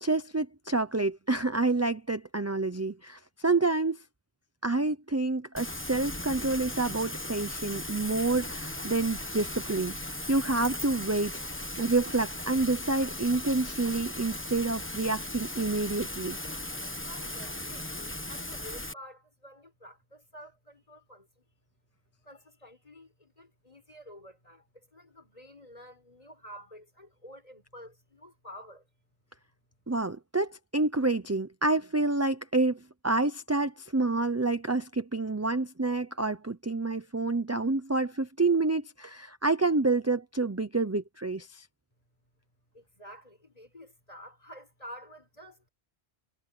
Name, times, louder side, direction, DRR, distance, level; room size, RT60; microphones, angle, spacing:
voice 1, 0.0-4.0 4.6-11.5 11.8-16.4 29.9-41.7, right 3 dB, 15° right, 0.7 m, -28 dB
Rain, 5.5-18.9, left 1 dB, 10° left, 1.1 m, -37 dB
voice 2, 17.0-21.5 22.2-28.9 42.7-45.7, equal, 35° left, 5.0 m, -50 dB
omnidirectional pair, 1.1 m